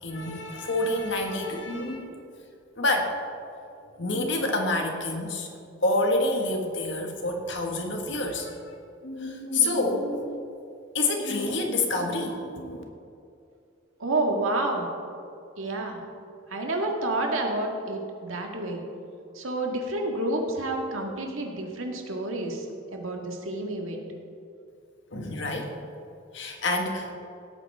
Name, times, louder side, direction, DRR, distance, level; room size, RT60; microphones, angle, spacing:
voice 1, 0.0-2.2 2.7-3.1 4.0-5.5 5.8-8.6 9.0-10.3 10.9-12.8 25.1-25.7 26.3-27.1, left 2 dB, 65° left, 2 dB, 1.6 m, -27 dB
voice 2, 14.0-14.9 15.6-16.0 16.5-18.8 19.3-22.7 22.9-24.0, right 2 dB, 90° right, 1 dB, 1.8 m, -29 dB
17.5 x 8.8 x 3.5 m, 2.5 s
head